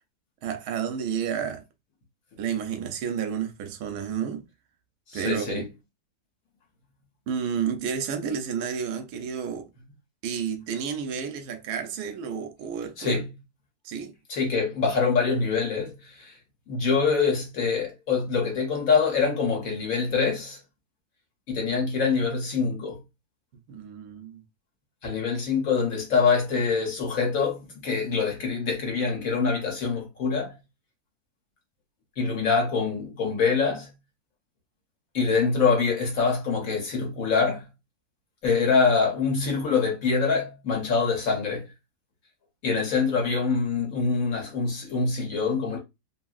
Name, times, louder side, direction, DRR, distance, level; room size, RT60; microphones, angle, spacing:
voice 1, 0.4-1.6 2.4-4.4 5.1-5.6 7.3-9.7 10.2-13.2 13.8-14.1 23.7-24.4, right 7 dB, 80° right, 1.1 m, -31 dB
voice 2, 5.1-5.6 13.0-13.3 14.3-16.3 16.7-20.6 21.5-23.0 25.0-30.5 32.2-33.9 35.1-37.6 38.4-41.7 42.6-45.8, left 5 dB, 65° left, 1.3 m, -25 dB
2.9 x 2.7 x 2.4 m
omnidirectional pair, 1.7 m